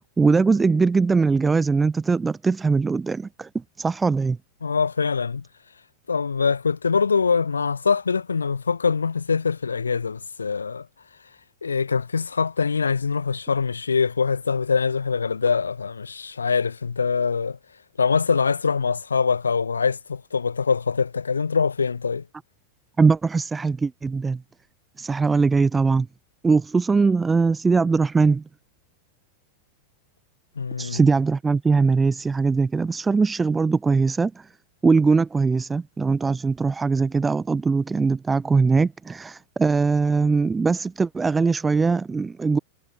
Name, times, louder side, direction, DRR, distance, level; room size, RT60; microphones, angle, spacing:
voice 1, 0.2-4.4 23.0-24.4 25.0-26.1 26.4-28.4 30.8-34.5 34.8-42.6, right 4 dB, 15° right, 0.8 m, -21 dB
voice 2, 4.6-5.4 6.1-10.9 11.6-17.6 18.0-22.2 30.6-31.0, left 5 dB, 75° left, 2.9 m, -23 dB
figure-of-eight pair, 90°, 0 cm